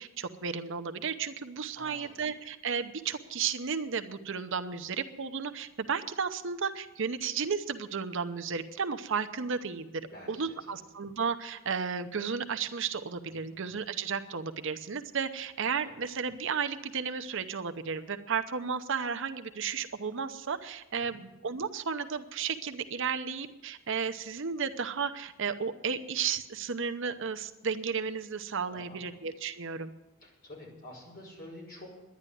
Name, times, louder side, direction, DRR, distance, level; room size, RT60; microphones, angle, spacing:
voice 1, 0.0-9.9 10.3-29.9, right 6 dB, 65° right, 8 dB, 0.8 m, -33 dB
voice 2, 1.7-2.1 10.0-10.6 13.4-13.5 15.9-16.0 21.1-21.2 28.7-29.1 30.2-31.9, left 1 dB, 45° left, -1 dB, 5.6 m, -48 dB
11.0 x 10.5 x 9.3 m, 0.99 s
head